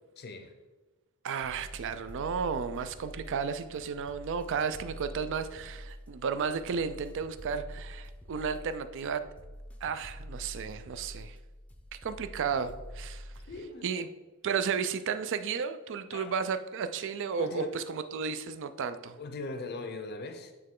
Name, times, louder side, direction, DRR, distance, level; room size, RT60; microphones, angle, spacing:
voice 1, 0.2-0.5 13.5-14.1 16.1-16.3 17.4-17.9 19.2-20.5, left 2 dB, 50° left, 7 dB, 0.6 m, -40 dB
voice 2, 1.2-9.3 9.8-11.4 11.9-13.3 13.8-14.1 14.4-19.2, right 6 dB, 60° right, 12 dB, 0.4 m, -33 dB
sound 1, 1.4-13.6, equal, 5° left, 0.5 m, -46 dB
8.8 x 3.2 x 3.6 m, 1.2 s
head